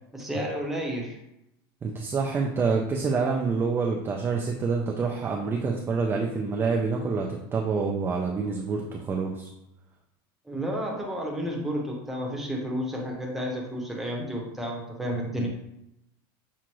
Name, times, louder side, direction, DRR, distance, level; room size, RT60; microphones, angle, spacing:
voice 1, 0.1-1.2 10.5-15.5, equal, ahead, -2 dB, 0.8 m, -31 dB
voice 2, 1.8-9.5 15.4-15.5, right 4 dB, 20° right, 1 dB, 0.4 m, -27 dB
6.1 x 2.5 x 2.9 m, 0.83 s
supercardioid pair, 145°, 12 cm